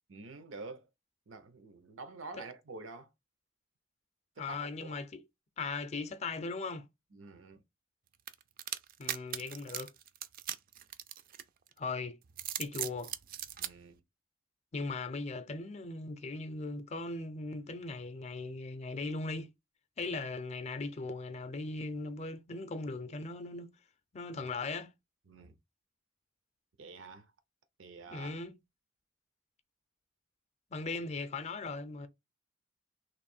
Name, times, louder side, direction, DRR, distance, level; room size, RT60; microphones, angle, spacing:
voice 1, 0.1-0.9 1.3-3.1 4.4-5.0 7.1-7.6 13.6-14.0 20.0-20.1 25.3-25.6 26.8-27.3 27.8-28.3, right 3 dB, 90° right, 0.7 m, -48 dB
voice 2, 4.4-5.2 5.6-6.9 9.0-9.9 11.8-12.2 12.6-13.1 14.7-19.5 20.0-23.7 24.1-24.9 28.1-28.6 30.7-32.1, left 3 dB, 35° left, 0.5 m, -38 dB
sound 1, 8.3-11.7 12.2-13.7, right 11 dB, 50° right, 0.3 m, -39 dB
3.1 x 2.6 x 4.2 m
head